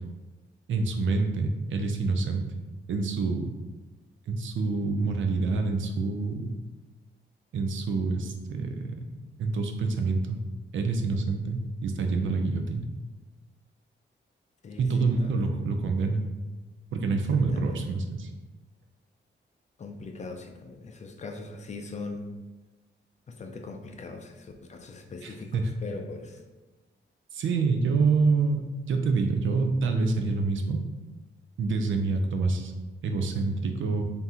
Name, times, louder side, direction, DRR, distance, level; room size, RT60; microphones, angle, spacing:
voice 1, 0.7-2.4 2.9-3.5 4.3-6.5 7.5-9.0 9.4-10.4 10.7-12.9 14.8-16.2 16.9-18.3 25.2-25.7 27.3-30.8 31.6-32.7 33.0-34.0, right 4 dB, 75° right, 5 dB, 0.5 m, -27 dB
voice 2, 14.6-15.5 17.3-17.8 19.8-22.3 23.3-26.4, left 3 dB, 35° left, 4 dB, 0.4 m, -41 dB
4.0 x 3.5 x 2.8 m, 1.2 s
wide cardioid pair, 170°, 20 cm